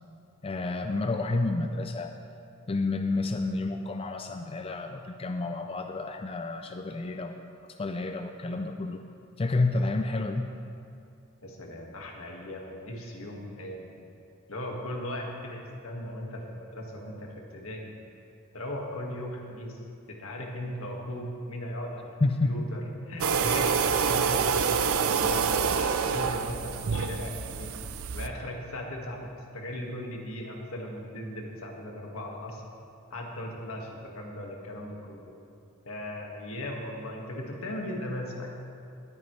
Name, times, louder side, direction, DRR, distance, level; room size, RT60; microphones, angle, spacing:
voice 1, 0.4-2.1 2.7-7.4 7.8-9.0 9.4-10.5 22.2-22.6, left 2 dB, 25° left, 5 dB, 0.4 m, -29 dB
voice 2, 11.4-13.9 14.5-17.9 18.5-19.8 20.1-27.7 28.1-29.2 29.5-32.6 33.1-35.3 35.9-38.5, left 1 dB, 80° left, -1 dB, 1.9 m, -38 dB
sound 1, 23.2-28.3, right 6 dB, 90° right, 0.5 m, -27 dB
19.5 x 9.3 x 3.3 m, 2.5 s
head